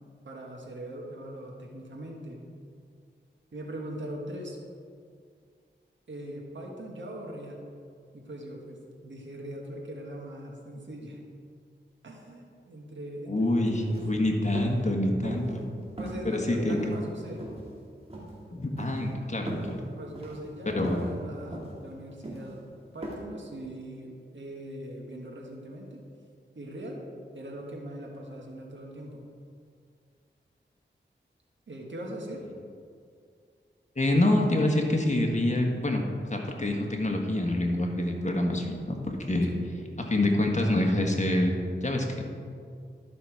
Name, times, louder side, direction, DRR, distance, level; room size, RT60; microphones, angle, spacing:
voice 1, 0.2-2.4 3.5-4.6 6.1-7.6 8.1-11.2 12.0-14.1 16.0-17.5 20.0-22.6 22.9-26.0 26.5-27.0 27.3-29.2 31.7-32.4 39.4-39.7, right 1 dB, 75° right, -1 dB, 1.6 m, -41 dB
voice 2, 13.3-15.6 16.2-16.8 18.5-19.8 20.7-21.0 34.0-36.0 36.3-39.0 39.3-39.5 40.1-42.0, left 1 dB, 35° left, 1 dB, 1.4 m, -26 dB
sound 1, 13.9-14.1 14.6-14.8 15.2-15.6 16.0-16.4 16.7-17.0 17.4-17.8 18.1-18.3 18.8-19.0 19.5-19.7 20.2-20.4 20.8-21.1 21.5-21.8 22.2-22.5 23.0-23.1, right 2 dB, 30° right, 2.4 m, -37 dB
11.5 x 5.7 x 4.7 m, 2.3 s
wide cardioid pair, 55°, 20 cm